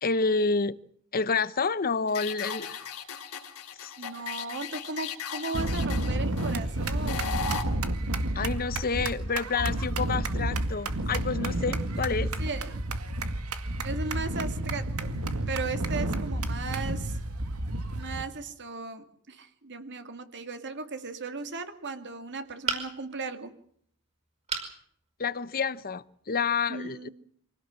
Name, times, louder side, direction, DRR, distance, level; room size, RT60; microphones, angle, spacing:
voice 1, 0.0-0.8 1.1-2.8 3.8-3.9 8.3-12.3 25.2-27.1, left 4 dB, 40° left, 0.9 m, -29 dB
sound 1, 2.1-7.6, left 6 dB, 75° left, 3.3 m, -37 dB
voice 2, 4.0-7.5 12.4-12.8 13.8-15.2 15.5-17.2 18.0-23.5 26.7-27.1, right 3 dB, 55° right, 2.4 m, -36 dB
sound 2, 5.5-18.2, right 1 dB, 75° right, 2.0 m, -30 dB
sound 3, 22.7-23.2 24.5-24.8 25.3-25.4 25.8-25.9, right 5 dB, 30° right, 5.1 m, -32 dB
24.5 x 17.5 x 7.5 m
head